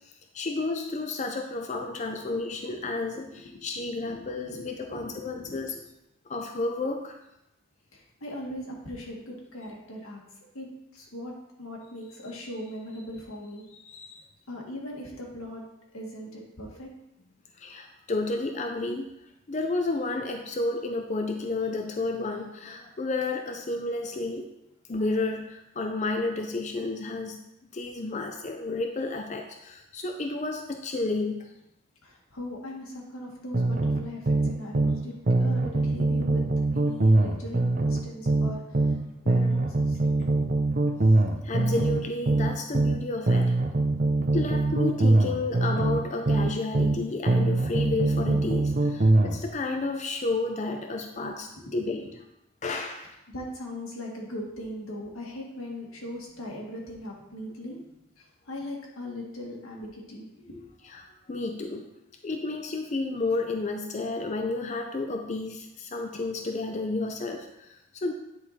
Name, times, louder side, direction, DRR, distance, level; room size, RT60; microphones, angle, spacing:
voice 1, 0.3-5.8 6.3-7.2 13.8-14.2 17.6-19.1 19.5-24.5 24.9-27.4 27.7-31.5 41.4-43.6 44.3-52.1 52.6-53.2 60.9-61.9 62.2-68.1, left 3 dB, 35° left, 4 dB, 0.5 m, -31 dB
voice 2, 1.7-2.4 2.7-2.9 3.3-3.6 4.0-5.8 7.9-10.2 10.5-11.3 11.6-13.7 14.5-15.6 15.9-16.9 32.0-36.5 36.7-39.0 39.2-40.0 51.6-52.1 53.3-57.8 58.2-60.6, left 1 dB, 90° left, -1 dB, 1.9 m, -40 dB
sound 1, 33.5-35.0 35.3-39.0 39.3-43.0 43.3-47.0 47.3-49.4, right 2 dB, 40° right, 0.6 m, -23 dB
9.8 x 4.6 x 4.2 m, 0.87 s
head